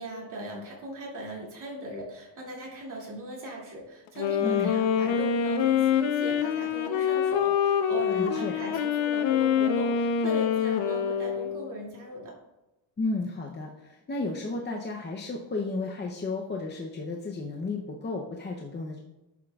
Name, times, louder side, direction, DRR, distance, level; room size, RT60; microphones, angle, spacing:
voice 1, 0.0-12.3, right 1 dB, 40° right, -3 dB, 2.6 m, -38 dB
Wind instrument woodwind instrument, 4.1-11.8, left 8 dB, 85° left, 0.9 m, -26 dB
voice 2, 8.1-8.6 13.0-19.0, left 3 dB, 25° left, 0 dB, 0.7 m, -33 dB
11.0 x 8.4 x 2.4 m, 0.98 s
cardioid pair, 155°, 46 cm